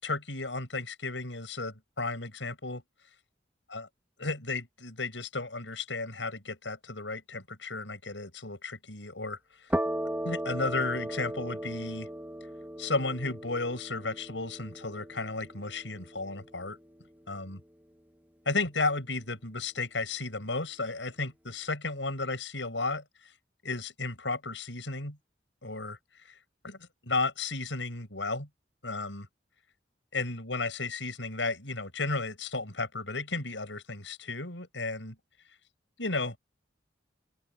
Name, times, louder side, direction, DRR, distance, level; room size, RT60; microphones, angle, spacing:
voice 1, 0.0-2.8 3.7-3.9 4.2-9.4 10.2-12.1 12.8-16.8 17.3-17.6 18.5-23.0 23.6-25.2 25.6-26.0 26.3-26.4 26.6-26.8 27.0-28.5 28.8-29.3 30.1-35.2 36.0-36.4, left 3 dB, 85° left, 7.3 m, -33 dB
sound 1, 9.7-17.2, right 1 dB, 10° right, 2.7 m, -37 dB
open air
head